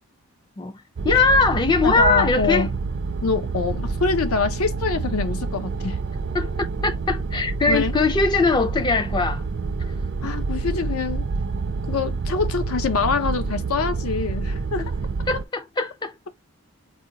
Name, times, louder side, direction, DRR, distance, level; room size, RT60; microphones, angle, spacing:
voice 1, 1.0-2.7 6.3-9.4 10.2-10.3 14.8-14.9 15.3-16.1, left 4 dB, 20° left, 0.3 m, -21 dB
sound 1, 1.0-15.5, right 4 dB, 50° right, 0.4 m, -28 dB
voice 2, 1.8-2.7 3.2-6.0 7.7-7.9 10.2-11.3 11.9-14.8, left 4 dB, 80° left, 0.6 m, -25 dB
4.3 x 2.3 x 2.7 m
head